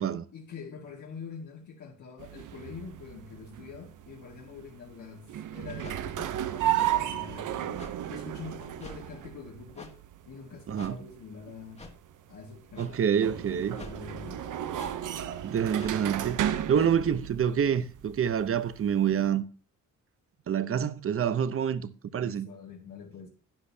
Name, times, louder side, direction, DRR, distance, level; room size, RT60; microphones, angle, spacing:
voice 1, 0.3-10.0 10.3-11.9 12.3-13.2 13.5-14.4 22.1-23.3, left 5 dB, 70° left, 1.8 m, -45 dB
sound 1, 2.2-19.3, right 12 dB, 80° right, 0.8 m, -35 dB
sound 2, 5.8-6.0 6.8-6.9 7.8-8.0 8.8-9.0 9.8-9.9 10.8-10.9 11.8-11.9 12.7-12.9 13.8-14.0 14.8-14.9 15.8-16.0 16.7-16.9, left 2 dB, 20° left, 1.6 m, -45 dB
voice 2, 10.7-11.0 12.8-13.8 15.4-19.4 20.5-22.5, right 8 dB, 45° right, 0.8 m, -27 dB
11.5 x 10.0 x 2.8 m
cardioid pair, 125°, 30 cm